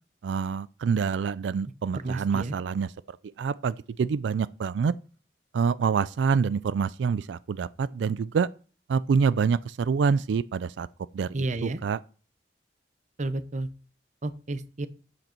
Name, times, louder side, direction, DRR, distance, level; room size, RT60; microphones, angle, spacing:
voice 1, 0.2-4.9 5.5-8.5 8.9-10.9 11.1-12.0, right 5 dB, 90° right, 0.4 m, -26 dB
voice 2, 1.9-2.5 11.3-11.8 13.2-13.7 14.2-14.9, right 2 dB, 40° right, 0.7 m, -31 dB
8.8 x 8.0 x 4.4 m
head